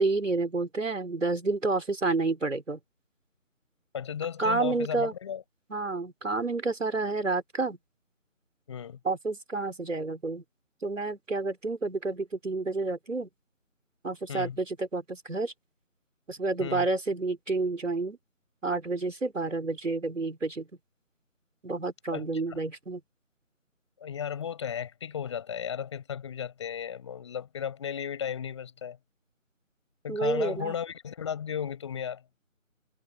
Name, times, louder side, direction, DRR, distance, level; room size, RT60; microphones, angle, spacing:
voice 1, 0.0-2.8 4.4-5.1 5.7-7.8 9.0-10.4 10.8-13.3 14.0-15.5 16.3-18.2 18.6-20.7 21.6-23.0 30.1-30.7, right 3 dB, 60° right, 4.5 m, -29 dB
voice 2, 3.9-5.4 8.7-9.0 14.3-14.6 16.6-16.9 22.1-22.6 24.0-29.0 30.0-32.2, left 8 dB, 20° left, 7.2 m, -35 dB
figure-of-eight pair, 165°, 41 cm